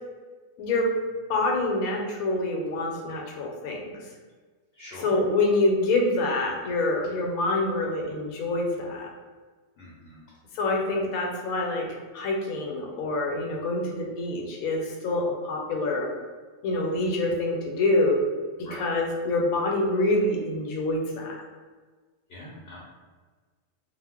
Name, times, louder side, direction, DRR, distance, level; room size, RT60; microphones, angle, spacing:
voice 1, 0.6-0.9 1.3-4.0 5.0-9.1 10.5-11.9 12.1-16.1 16.6-18.2 18.8-21.4, left 2 dB, 90° left, 0 dB, 1.0 m, -26 dB
voice 2, 4.7-5.2 9.8-10.2 18.6-18.9 22.3-22.8, left 1 dB, 60° left, -5 dB, 0.7 m, -43 dB
2.4 x 2.0 x 3.4 m, 1.4 s
omnidirectional pair, 1.4 m